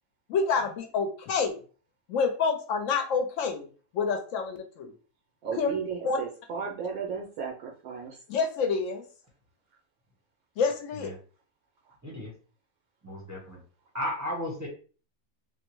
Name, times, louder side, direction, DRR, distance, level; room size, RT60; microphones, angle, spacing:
voice 1, 0.3-1.5 2.1-3.7 3.9-4.9 5.5-5.7 6.0-6.2 8.3-9.1 10.6-11.1, left 5 dB, 70° left, 6 dB, 0.9 m, -27 dB
voice 2, 5.4-8.2, right 6 dB, 85° right, -1 dB, 1.1 m, -34 dB
voice 3, 13.0-13.6 13.9-14.7, left 1 dB, 15° right, -2 dB, 0.6 m, -34 dB
3.5 x 2.1 x 3.0 m, 0.39 s
omnidirectional pair, 1.5 m